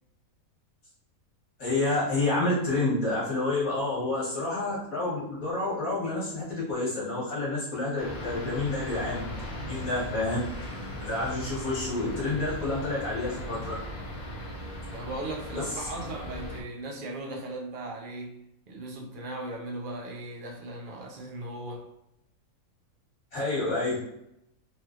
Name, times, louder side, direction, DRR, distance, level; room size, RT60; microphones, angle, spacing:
voice 1, 1.6-9.3 9.6-10.4 11.0-13.7 15.5-15.6 23.3-24.0, left 2 dB, 70° left, 1.5 m, -29 dB
sound 1, 8.0-16.6, left 1 dB, 40° left, 0.8 m, -38 dB
voice 2, 14.9-21.9, right 2 dB, 55° right, 0.6 m, -38 dB
3.2 x 3.0 x 2.4 m
omnidirectional pair, 1.5 m